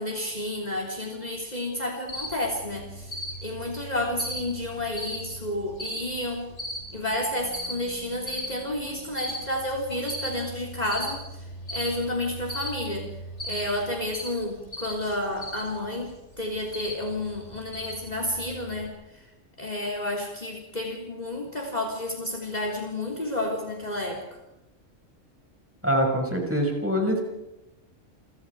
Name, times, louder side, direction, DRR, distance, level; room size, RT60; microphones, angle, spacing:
voice 1, 0.0-6.5 6.9-13.1 13.4-19.2 19.6-24.2, left 1 dB, 30° left, 2 dB, 3.8 m, -31 dB
Cricket, 2.1-18.9, equal, 60° left, 5.9 m, -38 dB
voice 2, 25.8-27.2, equal, 10° right, 1 dB, 6.4 m, -24 dB
29.5 x 26.0 x 4.9 m, 0.93 s
omnidirectional pair, 1.3 m